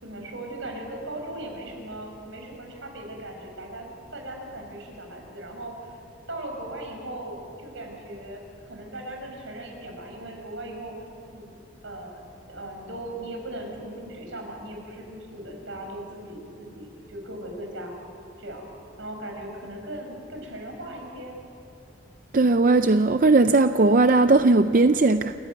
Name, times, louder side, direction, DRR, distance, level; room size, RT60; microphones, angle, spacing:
voice 1, 0.0-6.0 6.3-10.9 11.3-11.6 11.8-12.2 12.5-17.9 18.4-18.6 19.0-21.4, right 1 dB, 80° right, 2 dB, 5.4 m, -38 dB
voice 2, 22.3-25.3, right 3 dB, 45° right, 9 dB, 0.5 m, -18 dB
28.0 x 14.5 x 9.4 m, 2.5 s
head